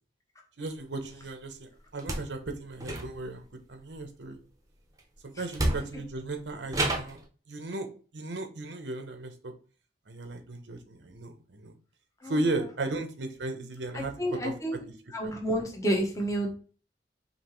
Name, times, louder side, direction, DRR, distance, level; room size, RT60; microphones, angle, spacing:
voice 1, 0.6-4.4 5.2-7.2 7.5-7.9 8.1-9.5 10.1-11.7 12.2-14.1 14.4-14.5 15.2-15.3, right 2 dB, 90° right, 6 dB, 0.8 m, -35 dB
sound 1, 2.0-2.3 2.8-3.4 5.0-5.1 5.5-6.1 6.7-7.2, right 1 dB, 20° right, 0.7 m, -30 dB
voice 2, 13.9-14.8 15.1-16.5, right 1 dB, 20° left, 1 dB, 1.0 m, -29 dB
5.3 x 2.8 x 3.1 m, 0.39 s
head